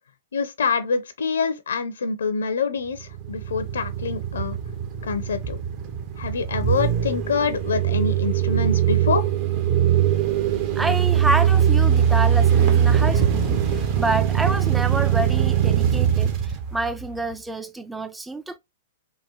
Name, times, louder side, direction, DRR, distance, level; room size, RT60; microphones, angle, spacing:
voice 1, 0.3-4.6 5.0-5.6 6.2-9.2, left 5 dB, 75° left, 0.5 m, -26 dB
sound 1, 3.0-17.3, right 9 dB, 40° right, 0.7 m, -21 dB
voice 2, 10.8-18.6, right 2 dB, 5° right, 0.4 m, -28 dB
3.7 x 2.2 x 2.8 m
hypercardioid pair, 110°, 0 cm